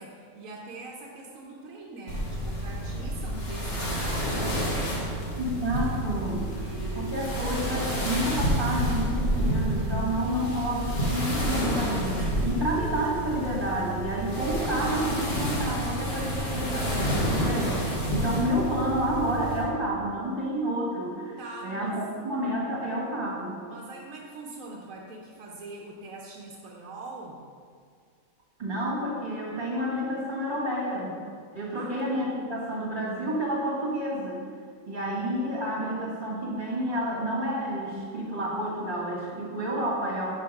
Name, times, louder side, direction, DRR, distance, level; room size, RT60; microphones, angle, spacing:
voice 1, 0.0-5.4 6.5-7.3 21.4-22.0 23.6-27.4 31.7-31.9, right 3 dB, 85° right, -1 dB, 1.1 m, -42 dB
sound 1, 2.1-19.6, equal, 50° left, 1.6 m, -29 dB
voice 2, 5.4-6.4 6.9-23.6 28.6-31.2 31.5-34.4 34.9-40.3, equal, 40° right, -6 dB, 1.8 m, -30 dB
sound 2, 13.9-18.7, right 4 dB, 60° right, 1.1 m, -47 dB
5.7 x 5.6 x 5.2 m, 2.1 s
omnidirectional pair, 1.4 m